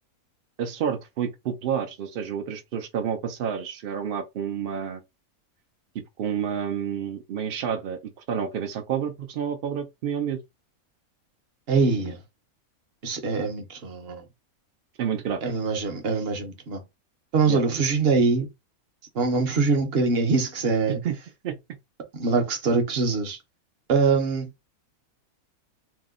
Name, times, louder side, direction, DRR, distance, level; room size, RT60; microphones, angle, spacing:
voice 1, 0.6-5.0 6.2-8.0 8.3-10.4 15.0-15.4 17.5-17.6 20.9-21.2 21.4-21.6, right 8 dB, 80° right, 0.5 m, -29 dB
voice 2, 11.7-12.2 13.0-14.2 15.4-16.8 17.3-18.5 19.1-21.0 22.1-23.4 23.9-24.5, right 4 dB, 50° right, 0.8 m, -23 dB
2.8 x 2.0 x 3.5 m
omnidirectional pair, 1.5 m